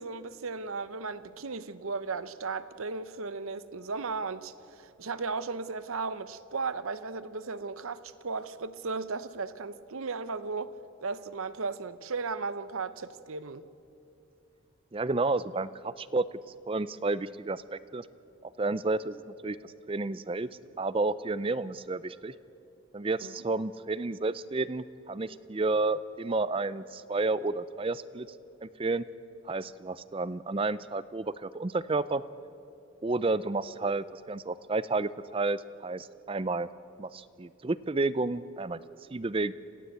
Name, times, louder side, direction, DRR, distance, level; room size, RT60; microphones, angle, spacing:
voice 1, 0.0-10.8 11.0-13.7 23.2-23.3, right 4 dB, 75° right, 0.8 m, -36 dB
voice 2, 14.9-16.3 16.7-18.1 18.4-20.5 20.8-22.3 22.9-28.3 28.6-29.0 29.4-32.2 33.0-36.7 37.0-38.8 39.1-39.5, right 3 dB, 25° right, 0.4 m, -31 dB
27.0 x 15.5 x 8.1 m
head